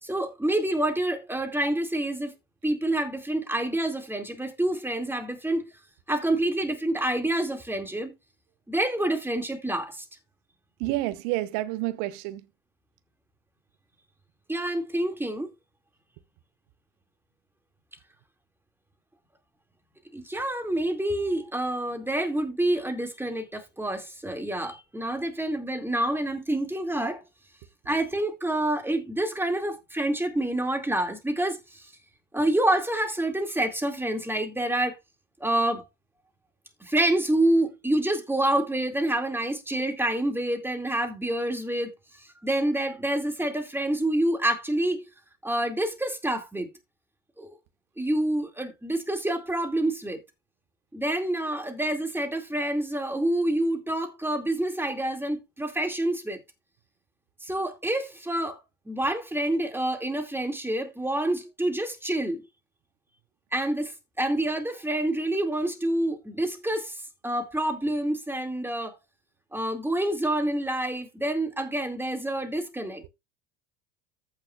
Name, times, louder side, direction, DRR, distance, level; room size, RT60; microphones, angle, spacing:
voice 1, 0.0-2.3 2.6-5.7 6.1-8.1 8.7-10.1 14.5-15.5 20.1-27.2 27.9-31.9 32.3-35.0 35.4-35.9 36.8-45.0 45.4-46.7 47.4-47.5 48.0-50.2 50.9-56.4 57.4-62.4 63.5-68.9 69.5-73.1, right 1 dB, 5° right, 2.0 m, -27 dB
voice 2, 10.8-12.4, right 17 dB, 60° right, 0.9 m, -29 dB
14.5 x 5.8 x 2.3 m
hypercardioid pair, 75°, 39 cm